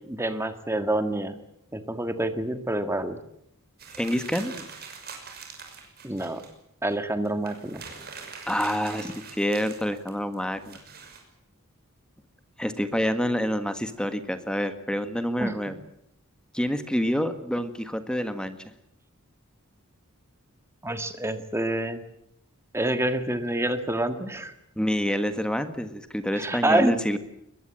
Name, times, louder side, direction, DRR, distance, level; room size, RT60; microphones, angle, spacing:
voice 1, 0.1-1.4 1.7-3.2 6.0-6.4 6.8-7.8 15.4-15.5 20.8-22.0 22.7-24.5 26.3-26.9, right 1 dB, 10° right, 9 dB, 1.6 m, -27 dB
sound 1, 3.8-6.5 6.9-7.0 7.3-11.2, right 5 dB, 45° right, 5.9 m, -43 dB
voice 2, 4.0-4.5 8.5-10.8 12.6-15.8 16.5-18.6 24.8-27.2, equal, 5° left, 9 dB, 1.6 m, -27 dB
22.5 x 21.5 x 8.9 m, 0.77 s
head